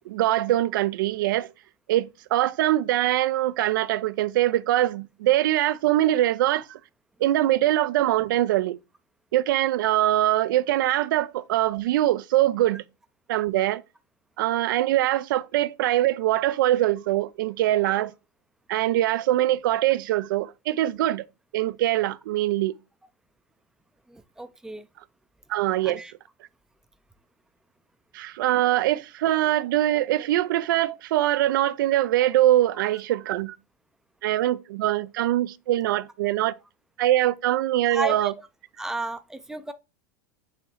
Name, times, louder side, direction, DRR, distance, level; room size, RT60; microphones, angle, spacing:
voice 1, 0.1-1.5 1.9-6.8 7.2-8.8 9.3-12.8 13.3-13.8 14.4-18.1 18.7-21.2 21.5-22.7 25.5-26.0 28.1-33.6 34.2-36.5 37.0-38.3, right 14 dB, 80° right, 0.4 m, -23 dB
voice 2, 24.1-24.9 25.8-26.1 37.9-38.4 38.8-39.7, right 1 dB, 5° right, 0.4 m, -33 dB
4.2 x 2.8 x 4.0 m
supercardioid pair, 130°, 11 cm